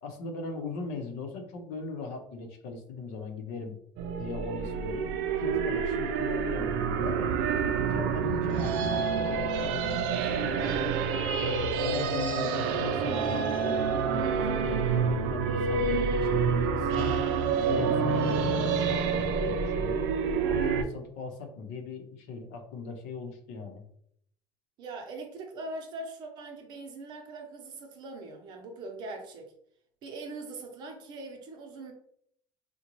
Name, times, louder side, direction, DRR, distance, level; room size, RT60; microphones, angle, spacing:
voice 1, 0.0-3.8 4.2-5.1 5.4-7.3 7.7-11.0 11.4-13.8 14.0-17.2 17.7-20.1 20.5-23.8, left 4 dB, 85° left, 4 dB, 0.7 m, -39 dB
sound 1, 4.0-20.8, right 5 dB, 85° right, 0.4 m, -28 dB
voice 2, 24.8-29.5 30.0-31.9, right 2 dB, 45° right, 3 dB, 0.7 m, -41 dB
3.8 x 2.2 x 3.0 m, 0.68 s
cardioid pair, 175°, 10 cm